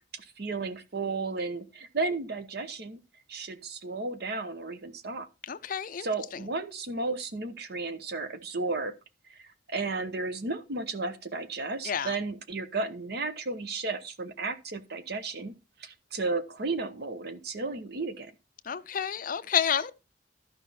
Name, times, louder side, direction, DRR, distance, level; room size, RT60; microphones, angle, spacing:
voice 1, 0.1-3.0 3.3-5.3 6.0-8.9 9.3-9.4 9.7-15.5 15.8-18.3, right 3 dB, 60° right, 1.0 m, -33 dB
voice 2, 5.5-6.1 11.9-12.1 18.7-19.9, left 8 dB, 50° left, 0.5 m, -29 dB
12.5 x 5.3 x 4.2 m
head